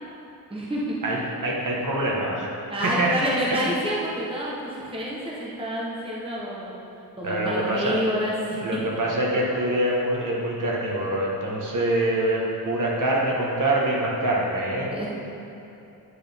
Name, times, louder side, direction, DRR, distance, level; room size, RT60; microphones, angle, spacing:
voice 1, 0.5-1.0 2.7-6.7 7.2-8.8 14.9-15.1, equal, 15° right, -5 dB, 0.9 m, -28 dB
voice 2, 1.0-2.5 2.8-3.1 3.5-3.6 7.2-8.0 8.5-14.9, right 1 dB, 50° right, -4 dB, 1.3 m, -25 dB
9.7 x 6.2 x 3.5 m, 2.8 s
wide cardioid pair, 165°, 40 cm